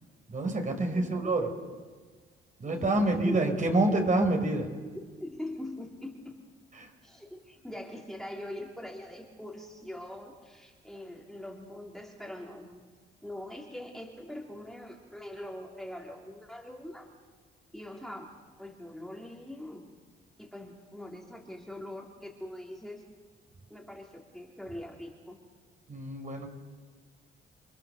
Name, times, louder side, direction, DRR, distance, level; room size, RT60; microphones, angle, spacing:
voice 1, 0.3-1.5 2.6-4.7 6.8-6.9 25.9-26.5, right 2 dB, 40° right, 4 dB, 4.7 m, -27 dB
voice 2, 0.9-1.3 2.7-3.4 5.0-6.4 7.0-12.8 13.2-17.1 17.7-18.3 18.6-19.9 20.4-23.0 23.7-25.4, left 1 dB, ahead, -1 dB, 3.5 m, -42 dB
29.0 x 22.5 x 6.8 m, 1.5 s
cardioid pair, 90°, 20 cm